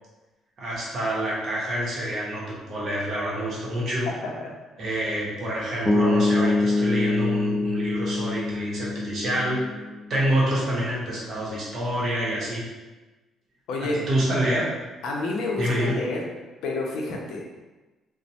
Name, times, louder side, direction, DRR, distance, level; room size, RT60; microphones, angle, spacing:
voice 1, 0.6-4.1 4.8-9.6 10.1-12.6 13.8-14.7 15.6-16.0, right 1 dB, 40° right, -6 dB, 0.7 m, -27 dB
sound 1, 5.9-10.0, left 2 dB, 10° left, 0.3 m, -24 dB
voice 2, 13.7-14.0 15.0-16.2 16.6-17.5, left 2 dB, 75° left, -1 dB, 0.5 m, -29 dB
2.9 x 2.0 x 2.7 m, 1.2 s
cardioid pair, 170°, 0 cm